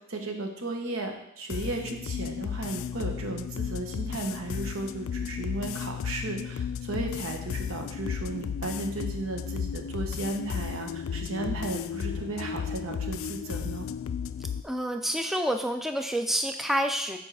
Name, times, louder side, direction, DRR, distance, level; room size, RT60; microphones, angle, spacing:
voice 1, 0.1-13.9, right 2 dB, 85° right, 3 dB, 1.2 m, -35 dB
sound 1, 1.5-14.6, left 7 dB, 80° left, 0.3 m, -34 dB
voice 2, 14.6-17.2, equal, ahead, 5 dB, 0.3 m, -28 dB
7.1 x 4.7 x 4.8 m, 0.82 s
head